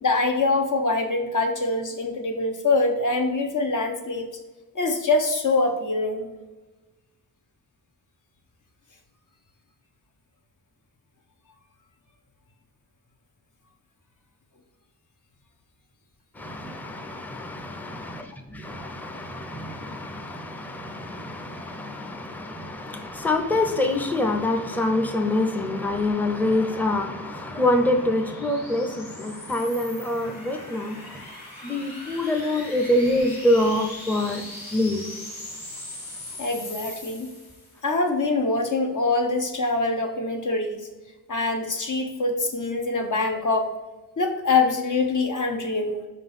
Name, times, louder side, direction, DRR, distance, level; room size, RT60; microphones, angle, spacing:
voice 1, 0.0-4.3 4.7-6.3 36.4-37.3 37.8-40.8 41.3-43.7 44.2-45.9, left 3 dB, 55° left, 1.1 m, -24 dB
voice 2, 16.4-18.2 18.5-31.0 31.6-34.4 34.7-35.0, left 1 dB, 5° left, 0.6 m, -25 dB
sound 1, 25.9-37.9, left 2 dB, 85° left, 2.2 m, -41 dB
5.5 x 3.9 x 5.5 m
wide cardioid pair, 125°, 37 cm